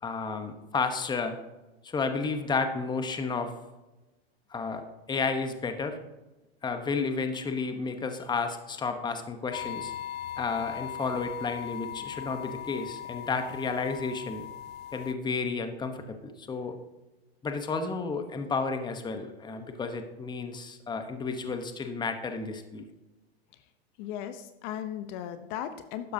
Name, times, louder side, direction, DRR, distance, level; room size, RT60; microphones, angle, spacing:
voice 1, 0.0-1.4 1.8-3.5 4.5-6.0 6.6-9.9 10.4-14.5 14.9-16.8 17.4-22.8, left 4 dB, 15° left, 7 dB, 1.0 m, -32 dB
sound 1, 9.5-15.1, left 10 dB, 30° left, 0.5 m, -39 dB
voice 2, 24.0-26.1, left 10 dB, 50° left, 9 dB, 0.8 m, -36 dB
12.0 x 9.8 x 2.8 m, 1.1 s
hypercardioid pair, 120°, 32 cm